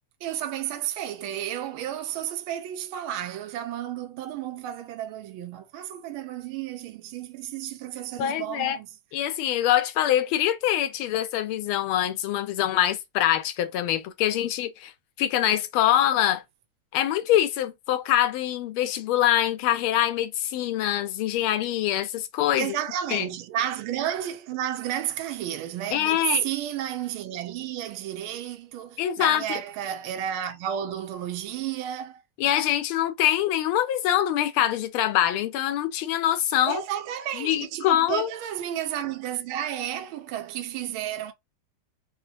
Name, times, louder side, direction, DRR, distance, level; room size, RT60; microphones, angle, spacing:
voice 1, 0.2-8.9 22.6-32.2 36.6-41.3, right 11 dB, 80° right, 1.4 m, -32 dB
voice 2, 8.2-8.8 9.1-14.9 15.2-16.4 16.9-22.7 23.1-23.2 25.9-26.5 29.0-29.6 32.4-36.8 37.3-38.3, left 12 dB, 80° left, 1.4 m, -24 dB
4.2 x 2.1 x 2.8 m
omnidirectional pair, 2.4 m